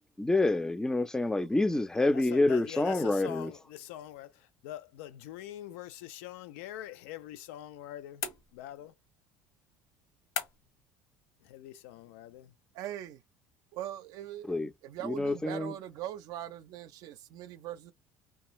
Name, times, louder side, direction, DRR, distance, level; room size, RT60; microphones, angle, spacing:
voice 1, 0.2-3.5 14.5-14.7 15.0-15.7, left 2 dB, 10° left, 0.4 m, -27 dB
voice 2, 2.1-4.3 4.6-8.2 8.5-8.9 11.4-12.5, left 13 dB, 85° left, 0.4 m, -44 dB
sound 1, 8.2-8.9 10.3-10.8, left 7 dB, 70° left, 1.0 m, -38 dB
voice 3, 12.7-13.2 13.7-14.5 14.8-17.9, right 12 dB, 65° right, 0.5 m, -41 dB
2.6 x 2.3 x 3.0 m
supercardioid pair, 100°, 7 cm